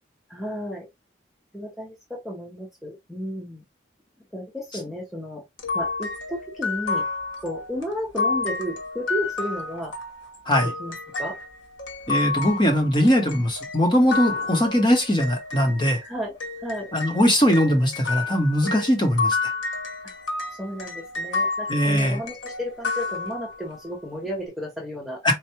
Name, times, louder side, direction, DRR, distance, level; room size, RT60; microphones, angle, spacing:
voice 1, 0.3-0.9 1.5-3.6 4.3-5.4 5.7-7.0 7.4-9.9 10.8-11.4 16.0-16.9 20.0-20.1 20.6-25.2, equal, ahead, 0.8 m, -33 dB
sound 1, 5.6-16.1 16.4-23.8, left 3 dB, 80° left, 1.0 m, -30 dB
voice 2, 12.1-16.0 16.9-19.5 21.7-22.2 25.2-25.4, equal, 25° left, 1.0 m, -20 dB
4.4 x 2.3 x 2.8 m
head